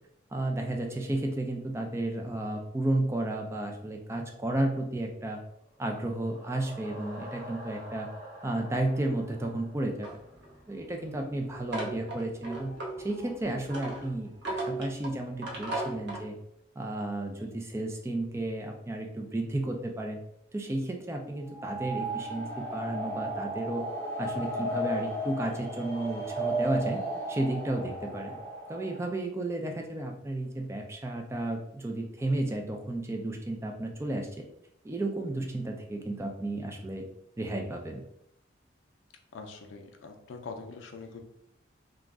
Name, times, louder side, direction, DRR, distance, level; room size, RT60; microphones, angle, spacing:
voice 1, 0.3-5.4 5.8-8.1 8.4-10.1 10.7-16.4 16.8-20.2 20.5-23.9 24.2-27.0 27.3-28.4 28.7-34.3 34.8-37.1 37.4-38.0, right 1 dB, 15° right, 2 dB, 0.3 m, -32 dB
sound 1, 5.6-10.5, equal, 50° right, 1.0 m, -47 dB
sound 2, 10.0-16.3, right 2 dB, 65° right, 0.7 m, -38 dB
sound 3, 21.4-29.1, right 1 dB, 15° left, 0.7 m, -34 dB
voice 2, 39.3-41.2, left 4 dB, 75° left, 3 dB, 0.4 m, -43 dB
2.4 x 2.0 x 3.4 m, 0.75 s
head